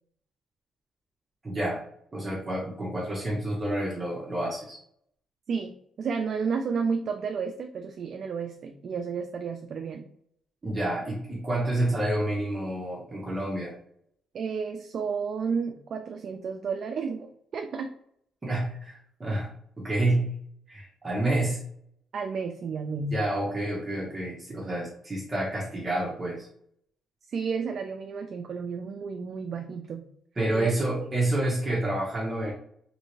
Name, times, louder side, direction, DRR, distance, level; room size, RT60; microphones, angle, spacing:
voice 1, 1.4-1.8 2.1-4.8 10.6-13.7 18.4-19.5 19.8-20.3 20.7-21.6 23.1-26.5 30.4-32.5, right 1 dB, 25° right, -4 dB, 0.9 m, -29 dB
voice 2, 6.0-10.0 14.3-17.9 22.1-23.1 27.3-30.0 30.5-30.7 31.0-31.1, right 5 dB, 55° right, 5 dB, 0.3 m, -32 dB
3.2 x 2.7 x 3.0 m, 0.69 s
cardioid pair, 90°, 0 cm